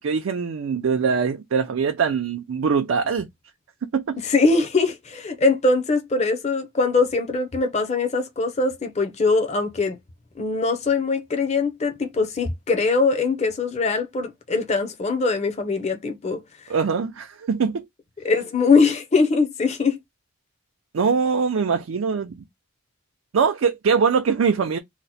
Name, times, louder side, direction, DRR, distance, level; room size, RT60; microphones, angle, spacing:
voice 1, 0.0-3.3 3.9-4.2 16.7-17.8 20.9-22.4 23.3-24.8, right 5 dB, 80° right, 0.4 m, -22 dB
voice 2, 4.2-10.0 10.4-16.4 18.2-20.0, left 4 dB, 35° left, 0.6 m, -22 dB
2.8 x 2.1 x 4.0 m
head